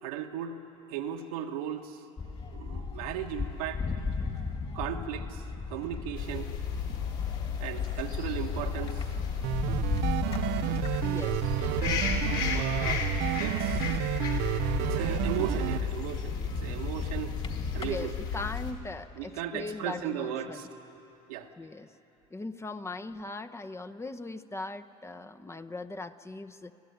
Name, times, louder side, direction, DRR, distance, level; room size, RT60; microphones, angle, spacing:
voice 1, 0.0-0.6 0.9-2.0 2.5-3.8 4.7-6.5 7.6-9.1 12.5-14.0 14.8-17.4 17.7-18.1 19.1-20.7 21.3-21.5, right 9 dB, 85° right, 3 dB, 1.7 m, -36 dB
sound 1, 2.2-18.1, left 4 dB, 30° left, 2.4 m, -36 dB
sound 2, 6.1-18.7, left 7 dB, 65° left, 3.9 m, -34 dB
sound 3, 9.4-15.8, right 15 dB, 65° right, 0.6 m, -30 dB
voice 2, 11.0-11.5 17.8-20.7 21.6-21.9 22.3-26.7, left 2 dB, 15° left, 8 dB, 0.9 m, -39 dB
26.5 x 15.0 x 9.4 m, 2.8 s
supercardioid pair, 85°, 18 cm